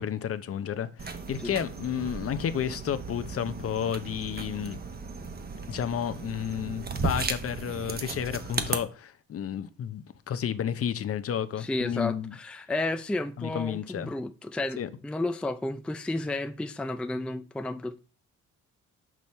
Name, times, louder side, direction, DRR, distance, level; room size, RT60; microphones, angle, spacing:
voice 1, 0.0-4.8 5.7-12.3 13.4-14.1 14.8-14.9, left 9 dB, 50° left, 0.7 m, -31 dB
sound 1, 1.0-8.8, right 4 dB, 30° right, 0.9 m, -35 dB
voice 2, 11.6-18.0, left 2 dB, 5° left, 0.4 m, -32 dB
6.2 x 5.2 x 4.3 m
cardioid pair, 90°, 30 cm